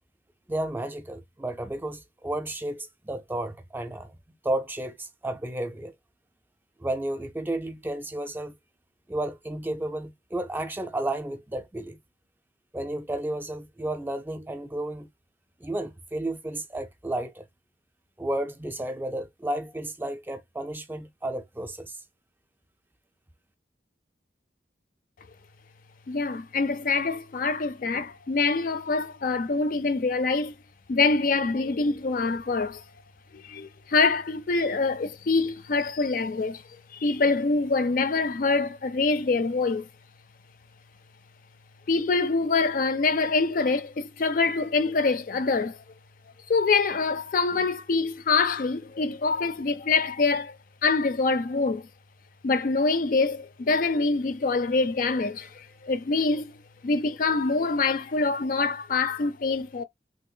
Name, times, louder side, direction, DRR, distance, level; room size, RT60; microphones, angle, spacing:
voice 1, 0.5-4.2 4.4-5.9 6.8-8.6 9.1-12.0 12.7-15.1 15.6-17.4 18.2-22.0, right 1 dB, 10° right, 0.4 m, -32 dB
voice 2, 26.1-30.5 30.9-32.8 33.3-36.6 36.9-39.9 41.9-45.8 46.5-50.6 50.8-51.9 52.4-56.6 56.8-59.8, left 4 dB, 50° left, 0.4 m, -25 dB
3.3 x 2.4 x 3.7 m
head